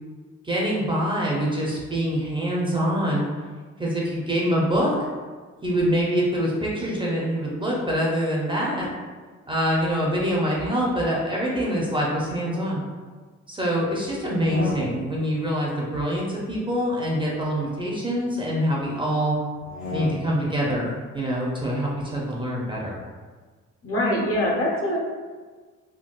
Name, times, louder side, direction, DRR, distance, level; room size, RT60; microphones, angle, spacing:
voice 1, 0.4-3.3 3.8-5.0 5.6-8.9 9.5-12.8 13.5-19.4 19.9-23.0, equal, 15° right, -4 dB, 0.6 m, -25 dB
sound 1, 14.2-15.3 16.6-18.2 19.5-20.5, left 3 dB, 70° left, 1.2 m, -36 dB
voice 2, 23.8-25.0, left 1 dB, 50° left, -2 dB, 0.9 m, -23 dB
3.6 x 2.3 x 2.3 m, 1.5 s
cardioid pair, 90°, 30 cm